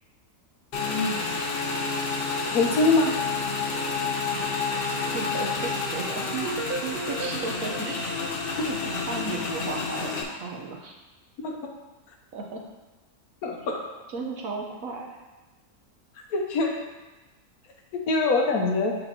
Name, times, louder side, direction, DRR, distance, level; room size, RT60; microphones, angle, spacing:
Motorcycle / Engine, 0.7-10.2, left 4 dB, 55° left, 0.7 m, -29 dB
voice 1, 0.8-1.2 2.5-3.2 8.6-8.7 11.4-11.6 13.4-13.8 16.3-16.7 18.1-19.0, left 3 dB, 80° left, 2 dB, 1.3 m, -23 dB
voice 2, 4.8-6.2 6.6-6.7 7.1-8.3 8.7-10.9 12.3-12.6 14.1-15.1, right 3 dB, 65° right, 0 dB, 1.2 m, -35 dB
sound 1, 6.3-9.3, right 4 dB, 85° right, 0.5 m, -35 dB
8.7 x 4.4 x 2.8 m, 1.1 s
omnidirectional pair, 1.6 m